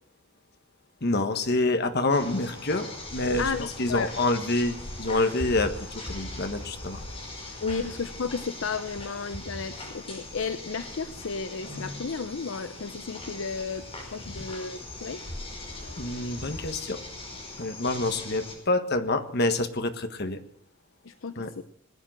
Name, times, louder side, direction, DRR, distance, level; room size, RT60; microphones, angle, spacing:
voice 1, 1.0-3.5 3.8-7.0 16.0-17.0 17.6-20.4 21.4-21.5, left 2 dB, 50° left, 8 dB, 1.5 m, -27 dB
sound 1, 2.1-18.5, left 2 dB, 30° left, 5.6 m, -40 dB
voice 2, 3.4-4.1 7.6-13.8 14.1-15.2 21.0-21.6, left 5 dB, 65° left, 12 dB, 0.7 m, -33 dB
20.5 x 9.1 x 7.5 m, 0.65 s
head